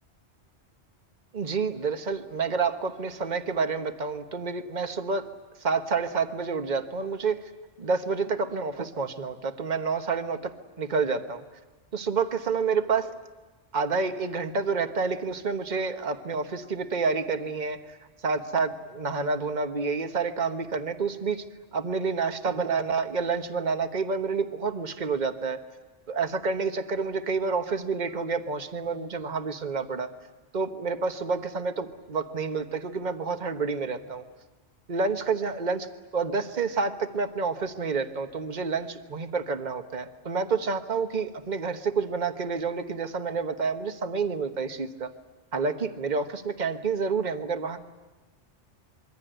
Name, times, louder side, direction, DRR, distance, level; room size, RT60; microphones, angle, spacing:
voice 1, 1.3-5.3 5.6-7.4 7.8-11.4 11.9-13.1 13.7-17.8 18.2-21.4 21.7-25.6 26.1-30.1 30.5-34.2 34.9-45.1 45.5-47.8, right 4 dB, 40° right, 7 dB, 1.3 m, -29 dB
26.0 x 23.0 x 9.1 m, 1.2 s
omnidirectional pair, 1.2 m